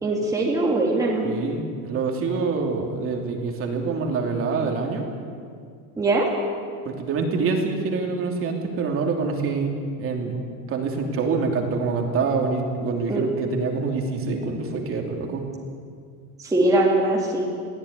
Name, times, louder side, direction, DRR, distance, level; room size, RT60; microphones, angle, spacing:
voice 1, 0.0-1.3 6.0-6.3 13.1-13.2 16.4-17.4, right 2 dB, 10° right, -3 dB, 2.4 m, -21 dB
voice 2, 1.2-5.1 6.8-10.4 10.7-15.5, right 4 dB, 30° right, 2 dB, 2.9 m, -26 dB
21.5 x 16.0 x 9.6 m, 2.1 s
supercardioid pair, 160°, 43 cm